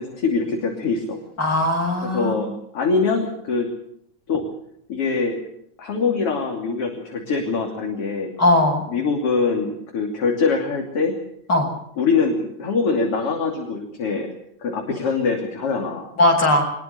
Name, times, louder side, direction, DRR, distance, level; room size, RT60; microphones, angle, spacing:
voice 1, 0.0-1.2 2.0-3.7 4.3-4.4 4.9-5.4 5.8-8.3 8.9-11.2 12.0-14.3 14.6-16.1, left 4 dB, 50° left, 2 dB, 3.8 m, -23 dB
voice 2, 1.4-2.5 8.4-8.8 11.5-11.7 16.2-16.6, left 1 dB, 35° left, 1 dB, 7.4 m, -18 dB
23.5 x 21.0 x 6.8 m, 0.72 s
omnidirectional pair, 3.4 m